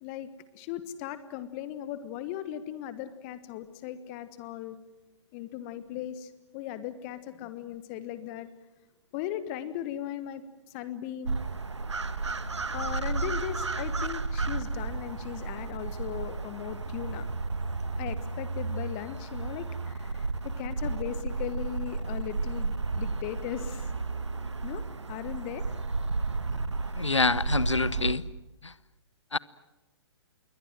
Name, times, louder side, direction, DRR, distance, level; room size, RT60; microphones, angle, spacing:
voice 1, 0.0-4.8 5.3-8.5 9.1-11.4 12.7-17.3 18.0-23.9 24.6-25.6, left 11 dB, 30° left, 1.4 m, -38 dB
sound 1, 11.2-28.1, right 3 dB, 75° right, 1.7 m, -33 dB
sound 2, 12.0-24.0, left 2 dB, 10° left, 7.2 m, -54 dB
voice 2, 27.0-28.2 28.6-28.7 29.3-29.4, left 3 dB, 80° left, 0.9 m, -26 dB
28.0 x 23.0 x 7.6 m
figure-of-eight pair, 125°, 15 cm